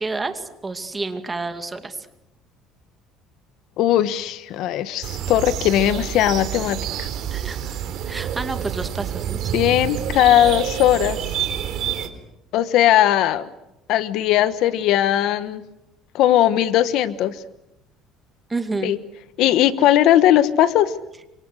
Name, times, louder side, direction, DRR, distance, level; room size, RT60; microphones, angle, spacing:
voice 1, 0.0-2.1 7.3-7.8 8.1-9.6 18.5-18.9, right 3 dB, 15° right, 8 dB, 2.4 m, -29 dB
voice 2, 3.8-7.1 9.5-11.2 12.5-13.5 13.9-15.6 16.1-17.4 18.8-19.0 19.4-20.9, left 12 dB, 60° left, 14 dB, 1.3 m, -18 dB
sound 1, 5.0-12.1, right 9 dB, 50° right, 3.7 m, -28 dB
30.0 x 26.0 x 6.4 m, 0.88 s
cardioid pair, 150°, 0 cm